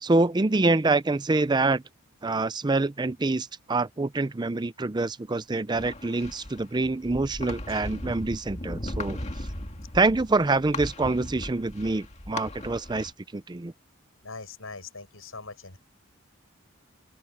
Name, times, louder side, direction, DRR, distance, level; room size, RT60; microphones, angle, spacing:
voice 1, 0.0-1.8 2.2-9.2 9.9-13.7, right 3 dB, 20° right, 0.5 m, -26 dB
sound 1, 5.7-13.1, left 1 dB, 35° left, 2.2 m, -37 dB
voice 2, 14.2-15.8, left 4 dB, 75° left, 6.9 m, -41 dB
open air
head